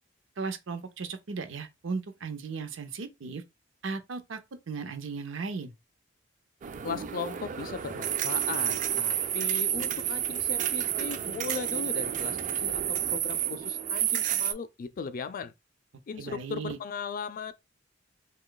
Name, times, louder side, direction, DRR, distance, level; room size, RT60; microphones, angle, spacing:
voice 1, 0.4-3.4 3.8-4.4 4.7-5.7 16.2-16.8, right 4 dB, 75° right, 0.6 m, -36 dB
sound 1, 6.6-14.5, right 10 dB, 40° right, 0.3 m, -30 dB
voice 2, 6.8-15.5 16.1-17.5, left 5 dB, 45° left, 0.4 m, -38 dB
2.9 x 2.3 x 3.8 m
head